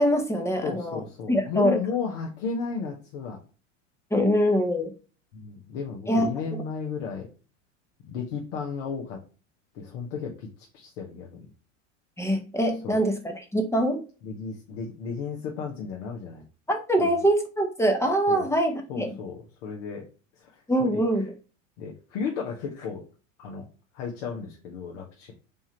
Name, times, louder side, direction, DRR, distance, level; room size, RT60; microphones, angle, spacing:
voice 1, 0.0-1.0 1.3-1.8 4.1-4.9 6.1-6.6 12.2-14.0 16.7-19.1 20.7-21.3, equal, 5° left, 4 dB, 0.9 m, -24 dB
voice 2, 0.6-3.4 5.3-7.3 8.0-9.2 9.7-10.5 10.7-11.5 12.8-13.0 14.2-16.4 17.0-17.2 18.3-18.5 18.9-20.1 20.4-21.0 21.8-23.0 23.4-23.7 23.9-25.3, left 5 dB, 65° left, 0 dB, 1.2 m, -34 dB
4.3 x 3.5 x 2.9 m, 0.34 s
hypercardioid pair, 95°, 38 cm